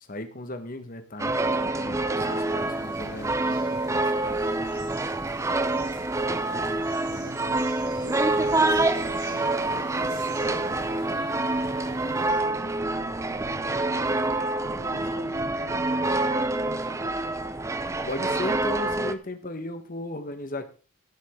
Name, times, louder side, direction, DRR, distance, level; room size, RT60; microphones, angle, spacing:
voice 1, 0.0-4.1 18.1-20.7, left 1 dB, 35° left, 8 dB, 1.3 m, -36 dB
sound 1, 1.2-19.1, right 2 dB, 15° right, 0.5 m, -27 dB
sound 2, 2.2-12.3, right 5 dB, 80° right, 4.7 m, -51 dB
voice 2, 7.1-7.7 8.0-17.4, right 3 dB, 55° right, 8 dB, 0.7 m, -43 dB
16.0 x 7.5 x 3.7 m, 0.35 s
head